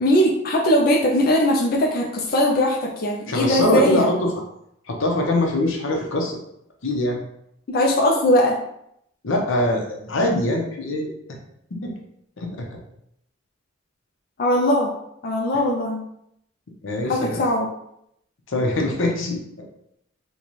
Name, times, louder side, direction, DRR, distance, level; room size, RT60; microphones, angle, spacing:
voice 1, 0.0-4.1 7.7-8.6 14.4-14.9 15.2-16.0 17.1-17.7, left 1 dB, 50° left, -1 dB, 0.4 m, -20 dB
voice 2, 3.3-4.3 4.9-6.4 6.8-7.2 9.2-11.1 11.8-11.9 12.4-12.6 16.8-17.4 18.5-19.7, left 1 dB, 85° left, 1 dB, 0.7 m, -23 dB
4.0 x 2.3 x 3.1 m, 0.76 s
head